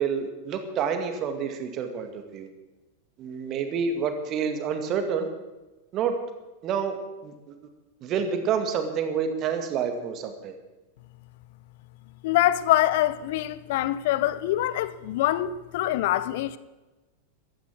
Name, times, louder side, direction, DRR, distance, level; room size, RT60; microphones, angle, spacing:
voice 1, 0.0-2.5 3.2-5.3 5.9-6.1 6.6-7.0 7.2-7.5 8.0-10.5, right 6 dB, 35° right, 2.1 m, -28 dB
voice 2, 12.2-16.6, left 14 dB, 50° left, 0.7 m, -24 dB
15.5 x 12.5 x 6.3 m
figure-of-eight pair, 90°, 0 cm